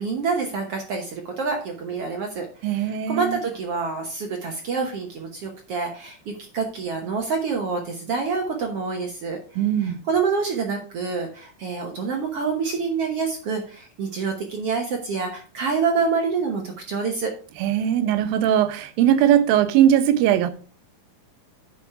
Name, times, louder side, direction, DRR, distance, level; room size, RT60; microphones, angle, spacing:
voice 1, 0.0-9.4 9.8-17.3, right 5 dB, 60° right, 1.6 m, -27 dB
voice 2, 2.6-3.4 9.6-10.0 17.6-20.5, right 10 dB, 90° right, 2.7 m, -20 dB
8.9 x 6.2 x 4.6 m
omnidirectional pair, 4.0 m